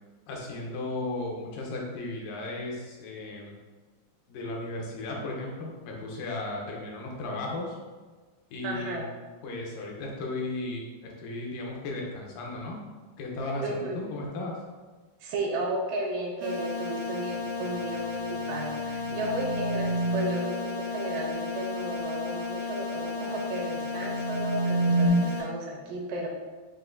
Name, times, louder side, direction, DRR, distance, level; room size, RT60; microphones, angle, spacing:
voice 1, 0.3-3.5 4.3-7.8 8.5-9.0 9.4-12.8 13.2-14.6, left 2 dB, 80° left, -1 dB, 2.4 m, -35 dB
voice 2, 8.6-9.1 13.6-14.0 15.2-26.3, right 1 dB, 80° right, -1 dB, 2.3 m, -33 dB
sound 1, 16.4-25.4, left 4 dB, 65° right, 0.8 m, -34 dB
sound 2, 18.3-20.5 23.5-25.1, right 2 dB, 65° left, 1.0 m, -30 dB
7.5 x 2.6 x 2.5 m, 1.3 s
omnidirectional pair, 3.9 m